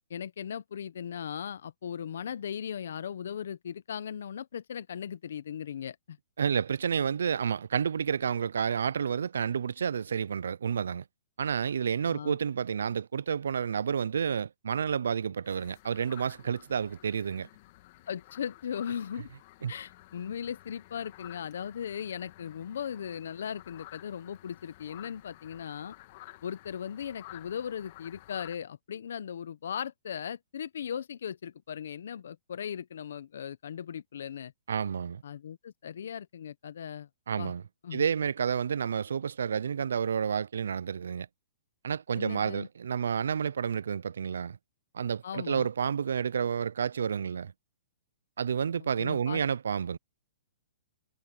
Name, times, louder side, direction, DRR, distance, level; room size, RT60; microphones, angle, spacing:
voice 1, 0.1-6.2 12.1-12.4 18.1-19.3 19.7-25.9 26.4-34.5 35.2-37.1 37.4-37.5 37.8-38.0 42.1-42.7 45.2-45.7 48.8-49.4, left 8 dB, 70° left, 0.7 m, -38 dB
voice 2, 6.4-11.0 11.4-17.5 19.6-19.7 34.7-35.2 37.3-37.6 37.9-41.3 41.8-44.6 44.9-47.5 48.4-50.0, right 7 dB, 80° right, 0.4 m, -30 dB
sound 1, 15.4-28.6, left 18 dB, 45° left, 1.8 m, -53 dB
hypercardioid pair, 140°, 0 cm